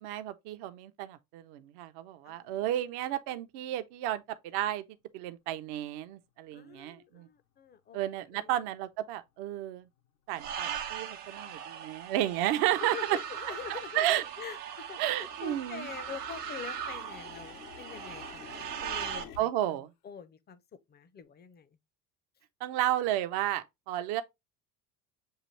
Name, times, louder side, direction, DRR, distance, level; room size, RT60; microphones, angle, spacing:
voice 1, 0.0-4.8 5.1-7.3 7.9-9.8 10.3-13.0 13.9-14.2 15.0-15.9 19.4-19.9 22.6-24.2, right 13 dB, 55° right, 0.7 m, -32 dB
voice 2, 2.2-2.6 6.5-8.0 8.3-8.7 12.8-21.8, left 7 dB, 20° left, 0.5 m, -45 dB
sound 1, 8.6-8.7 9.3-9.4 10.0-10.3 10.8-10.9 11.1-11.7 12.0-14.3 14.6-19.4, left 8 dB, 90° left, 0.9 m, -51 dB
sound 2, 10.4-19.2, right 8 dB, 85° right, 0.9 m, -39 dB
6.6 x 2.5 x 3.0 m
hypercardioid pair, 75°, 46 cm